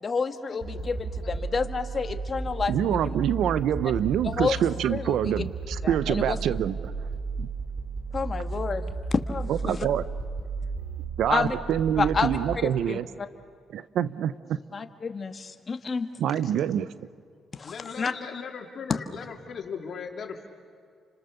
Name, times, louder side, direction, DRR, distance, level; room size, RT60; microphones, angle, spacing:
voice 1, 0.0-3.0 4.2-4.6 4.9-5.3 5.8-6.4 8.1-9.9 11.3-11.5 12.0-13.0 14.7-16.1 17.5-18.1 18.9-19.0, left 5 dB, 40° left, 7 dB, 1.7 m, -29 dB
sound 1, 0.6-12.5, right 3 dB, 45° right, 4.1 m, -34 dB
voice 2, 1.0-1.7 16.3-16.5 17.6-20.5, left 6 dB, 55° left, 2 dB, 3.4 m, -39 dB
voice 3, 2.7-6.9 7.4-7.5 9.5-10.0 11.2-13.1 13.7-14.6 16.2-16.9, right 10 dB, 75° right, 16 dB, 0.8 m, -26 dB
30.0 x 26.0 x 6.8 m, 2.2 s
cardioid pair, 80°, 0 cm